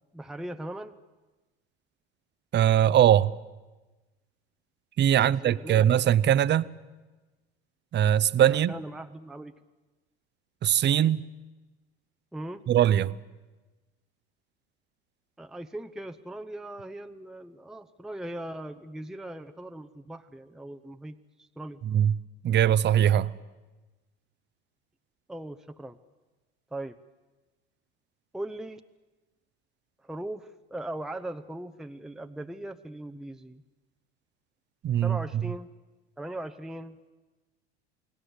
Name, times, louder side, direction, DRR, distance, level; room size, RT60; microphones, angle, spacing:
voice 1, 0.1-1.0 5.2-6.1 8.5-9.5 12.3-12.6 15.4-21.8 25.3-26.0 26.7-27.0 28.3-28.8 30.0-33.6 35.0-35.7 36.2-37.0, right 1 dB, ahead, 0.8 m, -39 dB
voice 2, 2.5-3.3 5.0-6.7 7.9-8.7 10.6-11.2 12.7-13.2 21.8-22.2 22.4-23.3 34.8-35.2, right 10 dB, 35° right, 0.7 m, -21 dB
29.0 x 19.0 x 8.1 m
hypercardioid pair, 75°, 32 cm